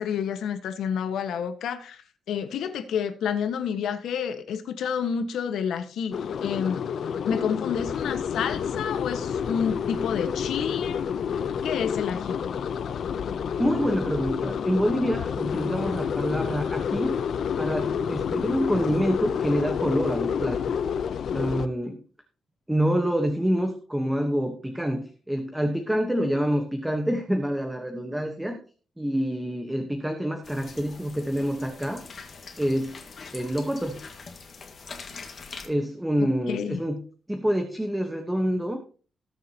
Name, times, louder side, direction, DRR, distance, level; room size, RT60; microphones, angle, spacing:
voice 1, 0.0-2.0 2.3-6.9 7.2-11.0 11.6-12.4 36.2-36.8, left 7 dB, 80° left, 9 dB, 1.4 m, -29 dB
sound 1, 6.1-21.7, left 7 dB, 55° left, 0.7 m, -29 dB
voice 2, 13.6-17.2 17.6-20.7 21.3-22.0 22.7-28.6 29.0-32.0 32.6-33.0 33.3-34.0 35.6-37.0 37.3-38.8, equal, 5° right, 4 dB, 1.2 m, -27 dB
sound 2, 30.4-35.7, left 4 dB, 40° left, 1.8 m, -43 dB
19.5 x 7.4 x 2.9 m, 0.39 s
wide cardioid pair, 170°, 0 cm